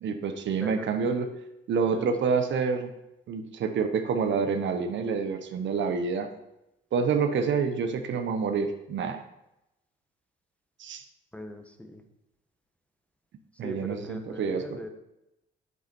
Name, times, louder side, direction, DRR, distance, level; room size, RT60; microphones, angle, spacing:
voice 1, 0.0-1.3 1.7-2.9 3.3-6.3 6.9-9.2 10.8-11.0 13.6-14.8, right 5 dB, 65° right, 6 dB, 1.1 m, -27 dB
voice 2, 0.6-0.9 1.9-2.1 11.3-12.0 13.6-14.9, equal, 5° left, 6 dB, 1.2 m, -40 dB
8.6 x 8.3 x 4.5 m, 0.91 s
cardioid pair, 90°, 20 cm